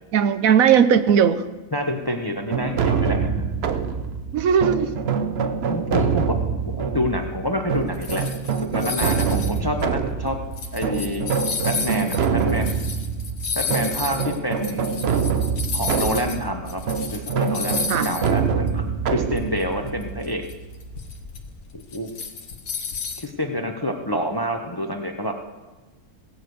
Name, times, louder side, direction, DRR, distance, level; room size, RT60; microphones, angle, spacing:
voice 1, 0.1-1.5 4.3-4.9 17.9-18.1, right 8 dB, 75° right, 11 dB, 1.1 m, -18 dB
voice 2, 1.7-3.3 5.7-6.4 6.6-8.2 8.7-10.4 10.7-11.2 11.6-12.7 13.5-14.9 15.7-16.8 17.1-20.4 21.9-22.1 23.2-25.3, equal, 20° left, 4 dB, 0.8 m, -27 dB
sound 1, 2.5-21.2, right 6 dB, 55° right, 0.9 m, -25 dB
sound 2, 7.7-16.4 16.7-18.4 18.7-18.8 19.4-23.3, left 5 dB, 75° left, 1.6 m, -32 dB
17.0 x 6.6 x 7.8 m, 1.2 s
omnidirectional pair, 1.6 m